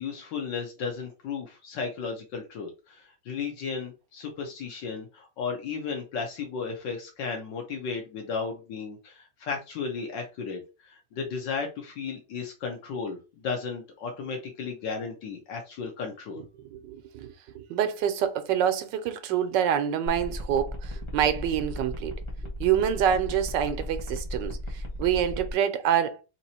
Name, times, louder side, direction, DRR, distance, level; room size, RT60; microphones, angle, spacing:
voice 1, 0.0-16.4, left 5 dB, 85° left, 1.6 m, -34 dB
voice 2, 16.7-22.2 22.6-26.2, right 9 dB, 85° right, 1.3 m, -26 dB
sound 1, 20.1-25.5, equal, 20° left, 0.9 m, -36 dB
3.8 x 3.0 x 4.1 m
omnidirectional pair, 1.9 m